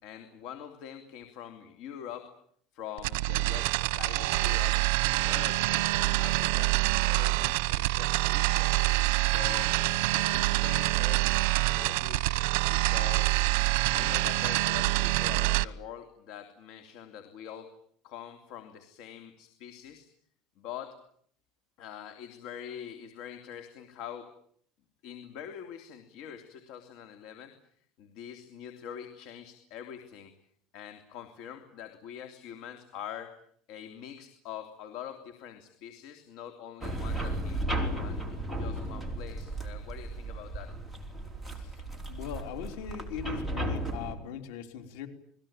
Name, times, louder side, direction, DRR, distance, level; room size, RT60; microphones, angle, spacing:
voice 1, 0.0-2.3 2.7-4.8 5.1-8.8 9.2-9.8 10.1-12.3 12.6-13.4 13.9-17.7 18.0-20.1 20.6-21.0 21.8-24.3 25.0-27.6 28.0-30.3 30.7-33.4 33.7-40.7, left 9 dB, 60° left, 7 dB, 3.0 m, -44 dB
sound 1, 3.0-15.6, right 18 dB, 80° right, 1.1 m, -26 dB
sound 2, 36.8-44.1, right 1 dB, 5° left, 4.4 m, -35 dB
voice 2, 42.1-45.1, left 8 dB, 85° left, 7 dB, 3.5 m, -39 dB
29.0 x 21.0 x 8.9 m, 0.65 s
cardioid pair, 155°, 0 cm